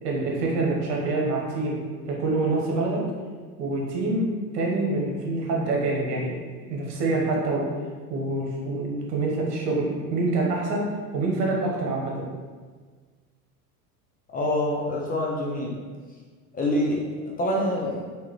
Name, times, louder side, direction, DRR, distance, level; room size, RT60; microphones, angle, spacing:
voice 1, 0.0-3.0 3.6-4.3 4.5-6.3 6.7-7.7 8.1-12.3, right 2 dB, 75° right, -2 dB, 1.3 m, -26 dB
voice 2, 14.3-15.8 16.5-17.0 17.4-18.0, left 1 dB, 20° left, -3 dB, 0.5 m, -25 dB
3.8 x 3.0 x 3.1 m, 1.5 s
hypercardioid pair, 100°, 47 cm